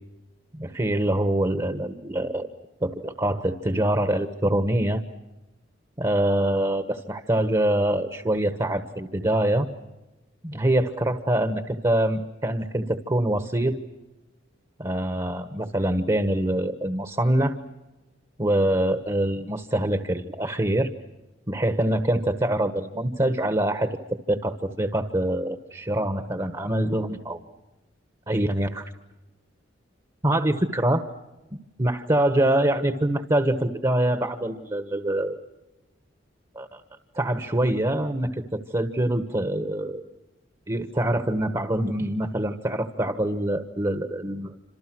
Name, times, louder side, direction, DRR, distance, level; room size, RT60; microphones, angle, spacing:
voice 1, 0.5-2.5 2.8-5.0 6.0-9.7 10.4-13.8 14.8-17.5 18.4-20.9 21.5-27.4 28.3-28.8 30.2-31.0 31.8-35.4 36.5-36.8 37.1-40.0 40.7-44.5, right 1 dB, 25° right, 8 dB, 1.4 m, -24 dB
29.0 x 27.0 x 6.2 m, 1.0 s
head